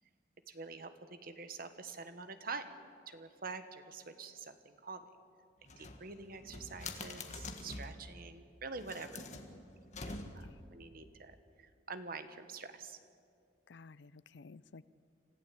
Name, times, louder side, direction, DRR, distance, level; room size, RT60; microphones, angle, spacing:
voice 1, 0.5-2.7 3.1-5.0 5.8-9.2 10.0-10.2 10.7-13.0, right 4 dB, 50° right, 9 dB, 1.3 m, -46 dB
sound 1, 5.6-8.0 8.7-10.6, left 2 dB, 40° left, 1.7 m, -46 dB
voice 2, 10.2-10.6 13.7-14.8, left 4 dB, 65° left, 18 dB, 0.5 m, -54 dB
26.5 x 15.0 x 8.5 m, 2.3 s
head